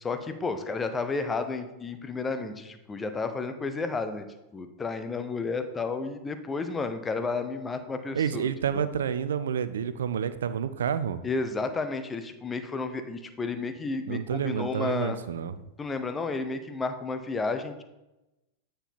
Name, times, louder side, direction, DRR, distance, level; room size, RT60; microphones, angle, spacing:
voice 1, 0.0-4.3 4.5-8.4 11.2-15.2 15.8-17.8, left 4 dB, 15° left, 8 dB, 0.6 m, -32 dB
voice 2, 8.1-11.2 14.1-15.6, right 8 dB, 65° right, 13 dB, 0.4 m, -29 dB
8.9 x 4.4 x 3.5 m, 0.97 s
figure-of-eight pair, 90°, 0 cm